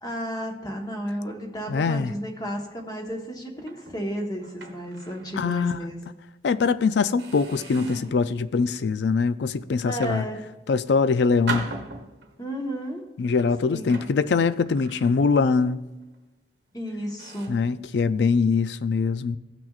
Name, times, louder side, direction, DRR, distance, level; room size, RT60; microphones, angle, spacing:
voice 1, 0.0-5.9 7.7-8.1 9.8-10.4 12.4-13.0 13.7-13.8 16.7-17.6, equal, 20° left, 1.2 m, -33 dB
voice 2, 1.7-2.1 5.4-5.8 6.4-10.2 10.7-11.7 13.2-15.9 17.5-19.4, left 5 dB, 70° left, 0.4 m, -23 dB
sound 1, 3.6-5.4 5.8-6.0 6.6-6.7 7.2-8.2 8.8-9.1 9.8-10.8 11.5-12.5 13.2-15.6 15.9-16.2 16.7-16.8 17.2-17.7, right 4 dB, 75° right, 1.1 m, -39 dB
18.0 x 6.0 x 2.4 m
head